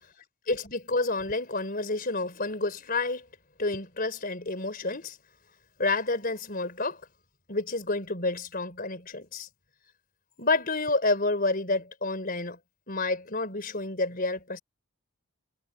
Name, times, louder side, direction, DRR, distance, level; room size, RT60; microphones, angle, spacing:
voice 1, 0.5-3.2 3.6-5.2 5.8-7.0 7.5-9.5 10.4-12.6 12.9-14.6, left 3 dB, 40° left, 4.5 m, -29 dB
head